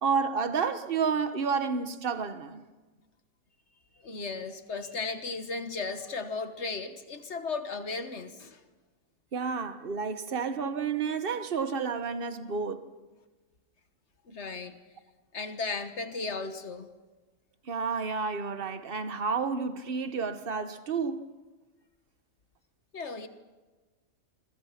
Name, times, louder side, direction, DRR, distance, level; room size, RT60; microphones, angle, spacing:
voice 1, 0.0-2.7 9.3-12.8 17.6-21.3, right 5 dB, 45° right, 1.3 m, -30 dB
voice 2, 4.0-8.6 14.3-14.8 15.3-16.9 22.9-23.3, left 4 dB, 55° left, 1.7 m, -35 dB
28.0 x 22.0 x 5.9 m
omnidirectional pair, 1.4 m